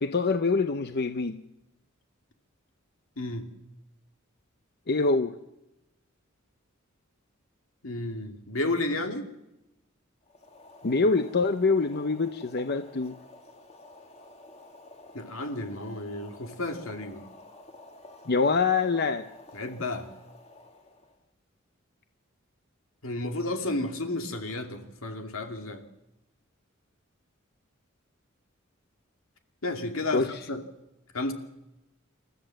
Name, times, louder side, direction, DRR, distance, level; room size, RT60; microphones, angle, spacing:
voice 1, 0.0-1.4 4.9-5.3 10.8-13.1 18.3-19.3 30.1-30.4, left 4 dB, 55° left, 9 dB, 0.8 m, -25 dB
voice 2, 7.8-9.2 15.1-17.2 19.5-20.1 23.0-25.8 29.6-30.6 31.1-31.3, left 2 dB, 80° left, 5 dB, 2.5 m, -32 dB
Boiling, 10.2-21.2, left 2 dB, 30° left, 2.4 m, -51 dB
28.0 x 13.5 x 7.7 m, 0.92 s
head